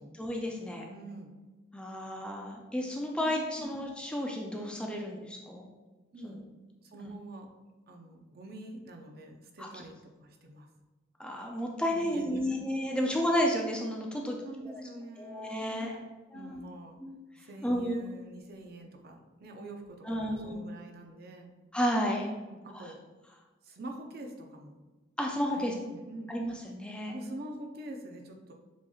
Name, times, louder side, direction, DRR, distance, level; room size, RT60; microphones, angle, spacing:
voice 1, 0.2-0.9 1.7-5.7 6.2-6.4 7.0-7.1 9.7-9.8 11.2-14.4 14.6-14.8 15.2-15.9 16.3-16.6 17.0-17.1 17.6-18.0 20.1-20.7 21.7-22.3 22.7-22.9 25.2-25.7 26.3-27.2, equal, 5° left, 0 dB, 0.3 m, -32 dB
voice 2, 0.8-1.3 3.2-3.3 3.6-3.7 6.1-6.4 6.8-7.5 7.9-10.7 11.9-13.0 14.1-15.7 15.9-16.1 16.3-17.0 17.4-21.5 22.5-23.0 23.6-24.8 25.5-26.3 26.9-28.5, right 1 dB, 50° right, 2 dB, 0.6 m, -46 dB
7.1 x 2.9 x 2.3 m, 1.3 s
head